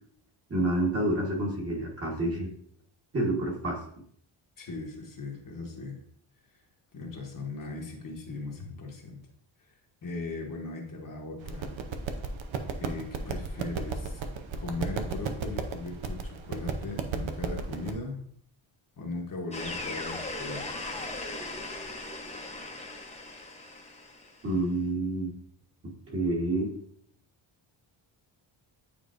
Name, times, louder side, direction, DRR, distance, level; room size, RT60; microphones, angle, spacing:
voice 1, 0.5-2.5 3.1-3.8 24.4-25.3 25.8-26.7, right 1 dB, 30° right, -2 dB, 1.3 m, -28 dB
voice 2, 4.6-6.0 6.9-9.2 9.6-9.7 10.0-11.8 12.8-14.2 14.6-18.2 19.0-20.8, left 3 dB, 40° left, 0 dB, 1.1 m, -38 dB
sound 1, 11.4-17.9, right 4 dB, 70° right, 0.8 m, -35 dB
sound 2, 19.5-24.5, left 2 dB, 15° left, 0.8 m, -38 dB
8.9 x 4.5 x 2.5 m, 0.64 s
wide cardioid pair, 155°, 48 cm